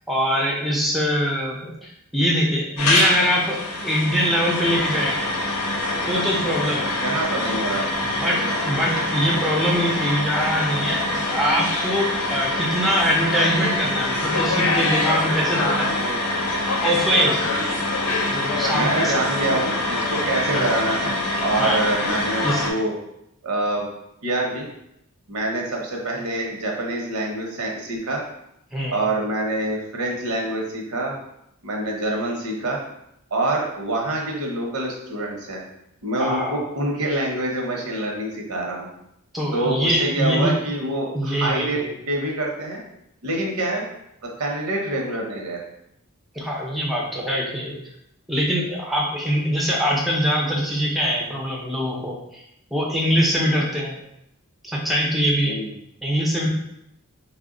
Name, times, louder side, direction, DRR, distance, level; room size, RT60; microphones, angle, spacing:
voice 1, 0.1-3.6 3.8-5.3 6.1-7.0 8.0-15.9 16.8-17.4 18.3-19.1 20.5-20.6 21.6-21.8 22.4-22.7 28.7-29.0 36.2-36.6 39.3-40.5 41.1-41.9 46.3-47.7 48.3-52.4 52.7-53.9 54.6-55.6 56.0-56.5, equal, ahead, -3 dB, 0.4 m, -23 dB
sound 1, 2.8-22.7, left 2 dB, 90° left, 0.6 m, -24 dB
voice 2, 7.0-7.9 17.5-17.6 18.7-22.9 23.4-23.9 24.2-24.7 25.3-28.2 28.9-31.1 31.6-32.8 33.3-35.6 36.0-38.9 39.5-41.8 42.1-42.8 43.2-43.9 44.2-45.6 55.4-55.7, right 2 dB, 75° right, -1 dB, 0.8 m, -26 dB
3.2 x 2.1 x 3.6 m, 0.80 s
head